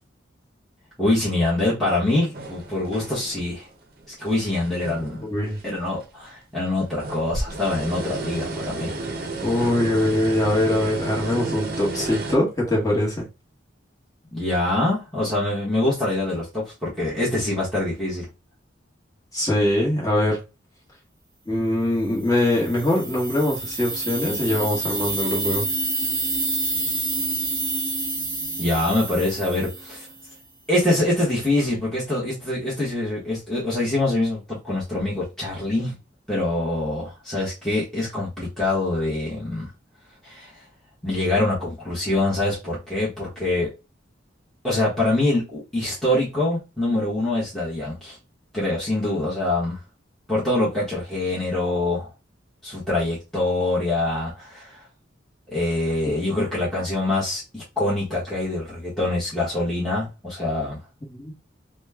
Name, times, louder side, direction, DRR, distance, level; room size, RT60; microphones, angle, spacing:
voice 1, 1.0-3.7 4.2-5.2 5.6-8.9 14.3-18.3 28.6-30.1 30.7-35.9 36.3-39.7 40.2-40.5 41.0-43.7 44.6-48.2 48.5-49.8 50.3-52.1 52.6-54.9 55.5-60.8, left 2 dB, ahead, 1.0 m, -24 dB
sound 1, 2.3-3.6 4.0-5.6 6.0-6.1 6.8-12.4, right 2 dB, 50° right, 0.6 m, -32 dB
voice 2, 5.2-5.6 9.4-13.2 19.3-20.4 21.5-25.7 61.1-61.3, left 1 dB, 20° left, 1.2 m, -22 dB
sound 2, 22.3-30.2, right 2 dB, 25° right, 1.3 m, -28 dB
3.0 x 2.1 x 3.4 m
head